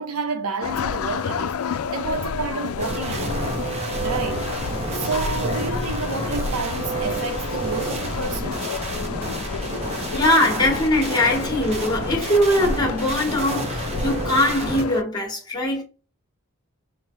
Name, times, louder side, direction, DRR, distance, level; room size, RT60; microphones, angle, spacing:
voice 1, 0.0-3.5 4.0-4.5 4.9-8.7, right 3 dB, 85° right, 0.8 m, -30 dB
sound 1, 0.6-15.0, left 5 dB, 80° left, 0.4 m, -30 dB
sound 2, 2.8-14.8, right 3 dB, 30° right, 0.7 m, -30 dB
voice 2, 10.1-15.8, left 1 dB, 20° left, 1.3 m, -21 dB
5.5 x 2.2 x 3.1 m
head